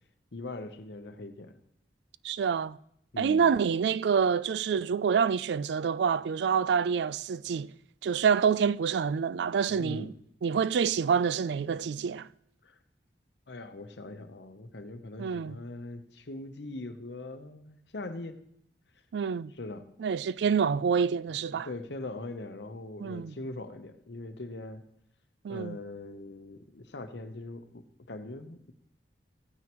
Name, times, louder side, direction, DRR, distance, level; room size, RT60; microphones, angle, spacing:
voice 1, 0.3-1.6 3.1-3.5 9.7-10.1 12.6-12.8 13.5-18.4 19.6-19.9 21.6-24.8 25.5-28.7, left 2 dB, 70° left, 0.9 m, -41 dB
voice 2, 2.2-2.8 3.2-7.7 8.0-10.1 10.4-12.3 15.2-15.6 19.1-19.5 20.0-21.7 23.0-23.3 25.4-25.8, right 6 dB, 70° right, 0.3 m, -27 dB
15.5 x 9.4 x 3.0 m
head